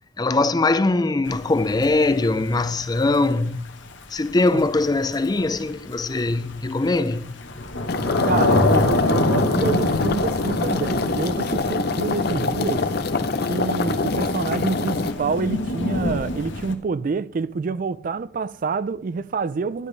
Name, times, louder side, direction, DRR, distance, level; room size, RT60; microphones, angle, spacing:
voice 1, 0.2-3.6 4.1-7.5, left 2 dB, 20° left, 0.4 m, -21 dB
Thunder / Rain, 1.3-16.7, left 2 dB, 85° left, 1.2 m, -26 dB
sound 1, 7.9-15.1, left 3 dB, 55° left, 0.7 m, -25 dB
voice 2, 8.3-12.9 13.5-19.9, right 4 dB, 45° right, 0.4 m, -27 dB
12.0 x 9.8 x 3.3 m
head